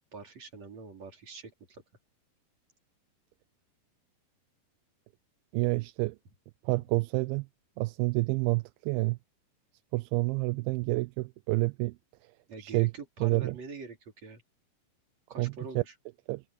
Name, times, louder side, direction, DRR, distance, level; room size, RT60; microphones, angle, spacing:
voice 1, 0.1-1.8 12.5-14.4 15.3-15.9, right 4 dB, 45° right, 5.2 m, -44 dB
voice 2, 5.5-6.2 6.6-7.4 7.8-9.2 9.9-12.0 12.6-12.9 13.2-13.6 15.4-15.8 16.3-16.4, right 24 dB, 85° right, 2.4 m, -28 dB
omnidirectional pair, 4.3 m